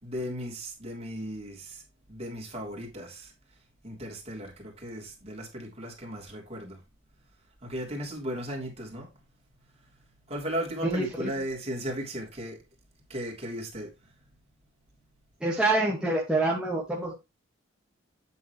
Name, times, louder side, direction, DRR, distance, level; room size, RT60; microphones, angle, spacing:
voice 1, 0.0-1.8 2.1-3.3 3.8-6.8 7.6-9.1 10.3-12.6 13.1-13.9, equal, 30° right, 3.4 m, -36 dB
voice 2, 10.8-11.3 15.4-17.1, right 2 dB, 5° right, 1.8 m, -26 dB
8.9 x 7.6 x 3.2 m
head